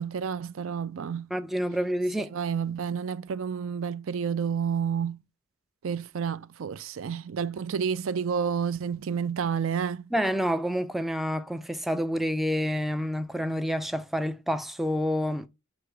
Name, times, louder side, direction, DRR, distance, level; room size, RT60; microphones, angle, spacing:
voice 1, 0.0-1.3 2.3-5.2 5.8-10.0, right 7 dB, 65° right, 0.4 m, -30 dB
voice 2, 1.3-2.3 10.1-15.5, equal, ahead, 0.3 m, -28 dB
7.0 x 3.0 x 4.8 m
head